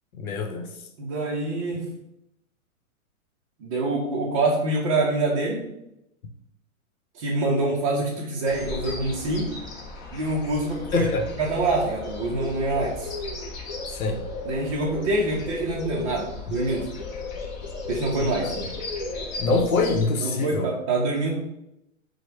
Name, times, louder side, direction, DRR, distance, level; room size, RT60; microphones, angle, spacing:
voice 1, 0.1-0.7 10.9-11.3 13.9-14.2 18.2-18.5 19.4-20.7, left 3 dB, 85° left, 0.8 m, -25 dB
voice 2, 1.0-1.9 3.6-5.6 7.1-9.5 10.1-11.1 11.4-13.1 14.4-16.9 17.9-18.6 20.2-21.4, right 2 dB, 25° right, 0.4 m, -25 dB
sound 1, 8.5-20.1, left 3 dB, 30° left, 0.7 m, -35 dB
4.8 x 2.1 x 4.4 m
hypercardioid pair, 145°, 41 cm